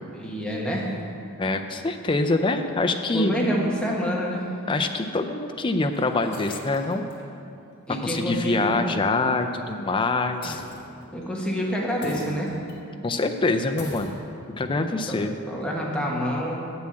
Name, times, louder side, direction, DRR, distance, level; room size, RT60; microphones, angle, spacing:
voice 1, 0.2-0.9 3.1-4.4 7.9-8.9 11.1-12.5 15.1-15.2 15.5-16.5, equal, 5° left, -4 dB, 1.3 m, -27 dB
voice 2, 1.4-3.3 4.7-7.0 8.0-10.6 13.0-14.2 14.6-15.4, left 2 dB, 20° left, 5 dB, 0.4 m, -25 dB
sound 1, 5.3-5.4 5.9-7.3 7.7-7.8 8.2-8.4 10.4-11.2 12.0-12.8 13.1-13.2 13.8-14.2, left 2 dB, 55° left, 1.9 m, -40 dB
7.5 x 7.0 x 7.6 m, 2.6 s
head